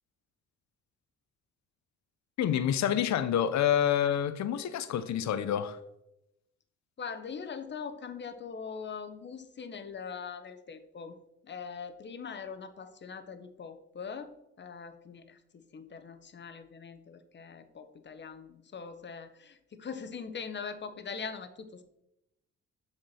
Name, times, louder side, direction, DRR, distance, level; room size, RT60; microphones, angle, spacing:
voice 1, 2.4-5.8, left 9 dB, 65° left, 0.7 m, -28 dB
voice 2, 7.0-11.1 11.4-14.3 14.6-21.8, left 6 dB, 35° left, 1.0 m, -42 dB
7.9 x 5.9 x 4.3 m
cardioid pair, 90°, 30 cm